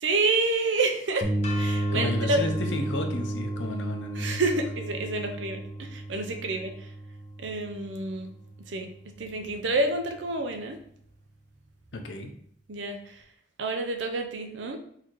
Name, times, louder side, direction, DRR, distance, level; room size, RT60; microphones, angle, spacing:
voice 1, 0.0-2.4 4.2-6.9 7.4-8.3 8.7-8.9 9.2-10.8 12.7-13.2 13.6-14.8, right 2 dB, 85° right, 5 dB, 0.7 m, -28 dB
sound 1, 1.2-8.9, right 1 dB, 40° right, 0.7 m, -32 dB
sound 2, 1.4-7.4, left 4 dB, 35° left, 0.8 m, -47 dB
voice 2, 1.9-4.4 11.9-12.3, left 2 dB, 85° left, 4 dB, 0.8 m, -33 dB
4.0 x 2.8 x 4.6 m, 0.65 s
head